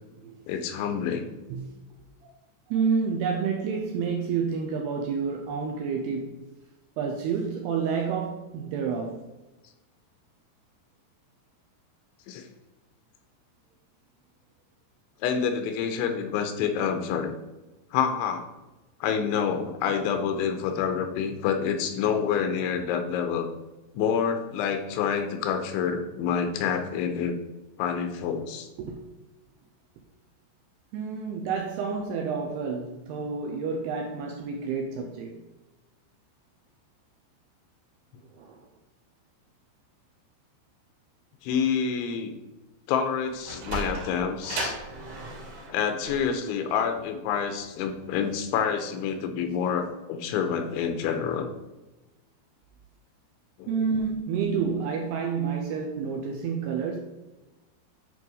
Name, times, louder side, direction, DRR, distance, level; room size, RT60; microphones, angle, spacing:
voice 1, 0.5-1.3 12.3-12.5 15.2-17.3 17.9-18.5 19.0-23.5 23.9-27.4 27.8-28.7 41.4-42.3 42.9-44.8 45.7-51.5 53.6-53.8, left 7 dB, 85° left, 3.2 m, -27 dB
voice 2, 2.7-6.4 7.0-9.3 28.8-29.0 30.9-35.4 38.4-38.6 53.7-57.0, right 5 dB, 85° right, 2.4 m, -29 dB
Sliding door, 43.3-48.3, right 2 dB, 50° right, 3.3 m, -37 dB
9.7 x 4.7 x 4.0 m
omnidirectional pair, 5.4 m